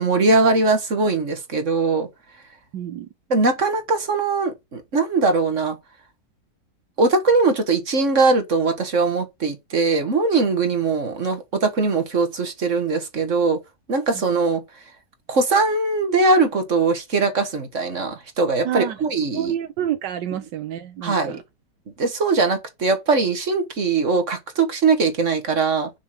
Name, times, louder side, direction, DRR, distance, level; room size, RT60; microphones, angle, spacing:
voice 1, 0.0-2.1 3.3-5.8 7.0-13.6 13.9-14.6 15.3-19.5 21.0-21.4 22.0-25.9, right 3 dB, 45° right, 1.9 m, -21 dB
voice 2, 2.7-3.1 14.1-14.2 18.6-19.0 19.3-21.4, right 10 dB, 90° right, 1.5 m, -28 dB
6.8 x 6.0 x 6.8 m
omnidirectional pair, 1.8 m